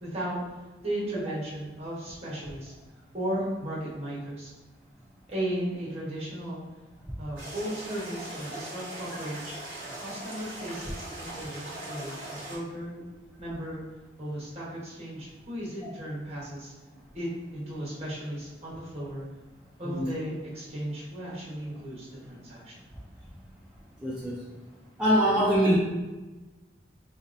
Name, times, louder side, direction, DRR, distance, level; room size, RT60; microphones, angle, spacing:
voice 1, 0.0-0.4 0.8-2.7 3.1-4.5 5.3-6.6 7.2-9.6 10.0-13.0 13.4-13.8 14.2-16.7 17.1-19.3 19.8-22.8, right 1 dB, 35° right, -6 dB, 1.1 m, -35 dB
sound 1, 7.4-12.6, right 1 dB, 50° right, 1.3 m, -40 dB
voice 2, 24.0-24.4 25.0-25.8, equal, 5° right, -8 dB, 0.3 m, -23 dB
3.9 x 2.8 x 2.5 m, 1.2 s
head